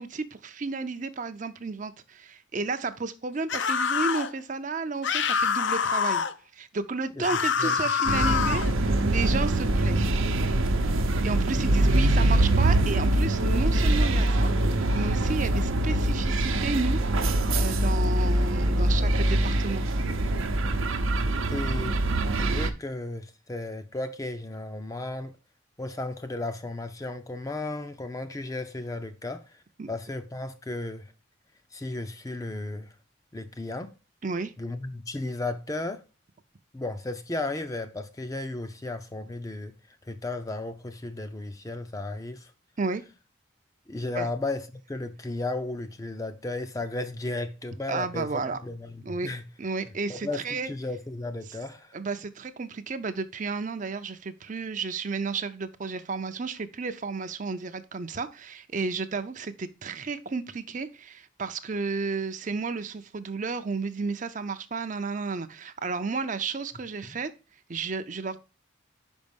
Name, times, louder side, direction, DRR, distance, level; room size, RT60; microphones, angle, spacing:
voice 1, 0.0-6.2 6.5-10.1 11.2-17.0 17.5-19.8 29.8-29.9 34.2-34.5 42.8-43.0 44.1-44.3 47.9-48.6 49.0-49.3 49.6-50.7 51.9-67.3 67.7-68.4, right 4 dB, 40° right, 0.5 m, -32 dB
sound 1, 3.5-4.3 5.0-6.3 7.2-8.7, left 6 dB, 65° left, 0.5 m, -26 dB
sound 2, 8.0-22.7, right 1 dB, 85° right, 0.8 m, -24 dB
voice 2, 21.5-22.0 22.4-25.3 25.8-29.6 29.9-31.1 31.7-32.9 33.3-33.9 34.6-36.0 36.7-39.7 40.1-42.5 43.9-48.3 48.6-49.4 50.1-52.0 67.0-67.2, left 2 dB, 15° left, 0.5 m, -34 dB
5.3 x 5.3 x 5.2 m
head